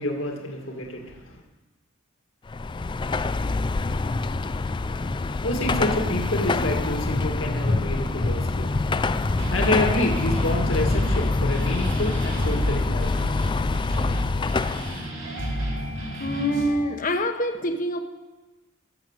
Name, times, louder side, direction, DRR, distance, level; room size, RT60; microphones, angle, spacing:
voice 1, 0.0-1.4 5.4-13.7, left 1 dB, 65° left, 1 dB, 2.0 m, -28 dB
Car passing by / Traffic noise roadway noise / Engine, 2.5-15.1, left 3 dB, 25° left, 0.4 m, -25 dB
sound 1, 5.0-16.7, equal, 65° right, 4.8 m, -33 dB
voice 2, 16.2-18.0, equal, 40° left, 6 dB, 1.2 m, -25 dB
15.5 x 7.4 x 7.2 m, 1.2 s
head